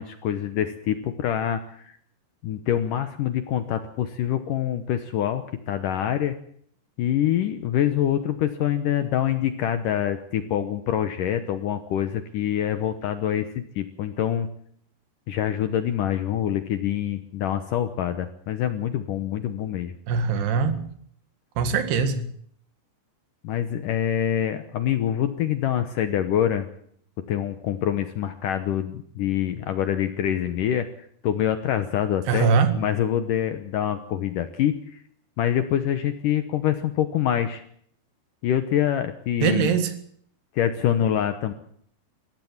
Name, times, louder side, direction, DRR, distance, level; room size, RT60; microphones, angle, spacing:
voice 1, 0.0-2.0 2.4-6.3 7.0-14.5 15.3-20.0 23.4-26.7 27.3-35.0 35.4-37.6 38.4-39.8 40.5-41.5, left 10 dB, 70° left, 10 dB, 2.1 m, -25 dB
voice 2, 20.1-20.8 21.6-22.3 32.3-32.7 39.4-39.9, right 6 dB, 75° right, 10 dB, 3.8 m, -22 dB
22.0 x 16.5 x 7.3 m, 0.64 s
omnidirectional pair, 4.9 m